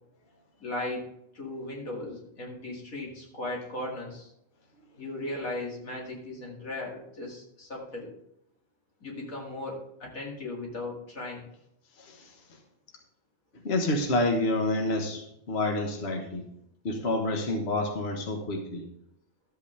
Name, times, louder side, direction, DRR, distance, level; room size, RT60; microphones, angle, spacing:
voice 1, 0.6-1.1 1.3-4.3 5.0-8.1 9.0-11.4, left 2 dB, 85° left, -2 dB, 2.7 m, -37 dB
voice 2, 12.0-12.3 13.6-16.4 16.8-18.8, left 2 dB, 50° left, 2 dB, 1.5 m, -28 dB
12.5 x 8.1 x 3.4 m, 0.76 s
omnidirectional pair, 1.4 m